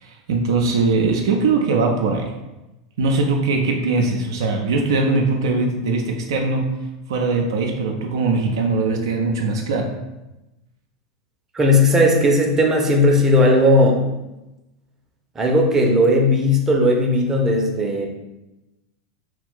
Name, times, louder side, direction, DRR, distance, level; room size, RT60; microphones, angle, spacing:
voice 1, 0.0-2.3 3.0-6.7 7.1-9.9, right 3 dB, 65° right, 1 dB, 0.4 m, -21 dB
voice 2, 11.5-14.0 15.4-18.1, left 1 dB, 20° right, 0 dB, 0.6 m, -16 dB
2.9 x 2.4 x 3.6 m, 0.99 s
figure-of-eight pair, 85°, 2 cm